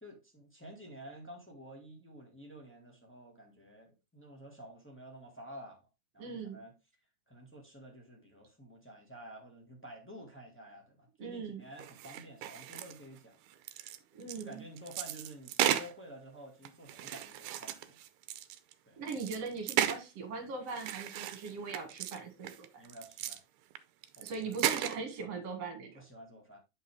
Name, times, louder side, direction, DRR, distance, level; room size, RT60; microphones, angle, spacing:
voice 1, 0.0-5.8 6.1-6.7 7.3-13.4 14.4-18.0 18.9-19.0 22.8-23.4 24.2-24.3 25.9-26.6, right 1 dB, 10° left, 0.7 m, -50 dB
voice 2, 6.2-6.6 11.2-11.6 14.1-14.6 19.0-22.8 24.2-26.0, right 4 dB, 55° right, 2.8 m, -40 dB
sound 1, 11.8-13.2 13.5-15.9 16.6-18.7 19.1-20.0 20.7-22.2 22.4-23.4 23.7-23.8 24.0-25.0, right 12 dB, 75° right, 1.9 m, -35 dB
8.6 x 5.5 x 3.4 m
omnidirectional pair, 3.7 m